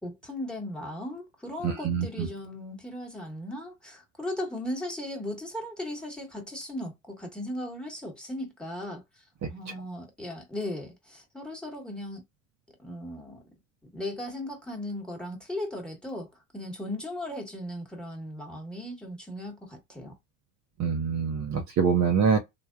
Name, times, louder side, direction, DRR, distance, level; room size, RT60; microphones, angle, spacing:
voice 1, 0.0-9.0 9.5-12.2 12.8-13.4 13.9-16.3 16.5-20.1, left 1 dB, ahead, 1.1 m, -37 dB
voice 2, 1.6-2.3 20.8-22.4, right 6 dB, 40° right, 0.6 m, -25 dB
3.3 x 2.1 x 2.3 m
hypercardioid pair, 80°, 42 cm